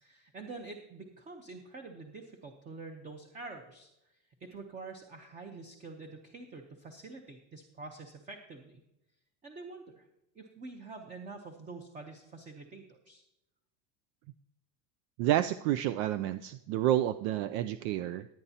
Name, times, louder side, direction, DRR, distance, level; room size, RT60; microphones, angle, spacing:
voice 1, 0.0-8.8 9.4-10.1 10.3-13.2, right 3 dB, 20° right, 4 dB, 0.8 m, -47 dB
voice 2, 15.2-18.3, right 13 dB, 70° right, 12 dB, 0.5 m, -29 dB
18.0 x 9.1 x 2.8 m, 0.88 s
cardioid pair, 160°, 37 cm